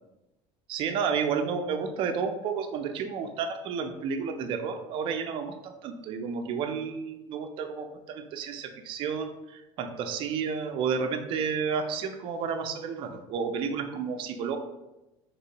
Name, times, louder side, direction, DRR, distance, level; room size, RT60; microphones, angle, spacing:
voice 1, 0.7-14.6, right 6 dB, 40° right, 6 dB, 0.3 m, -31 dB
3.2 x 3.0 x 2.8 m, 0.98 s
cardioid pair, 155°, 13 cm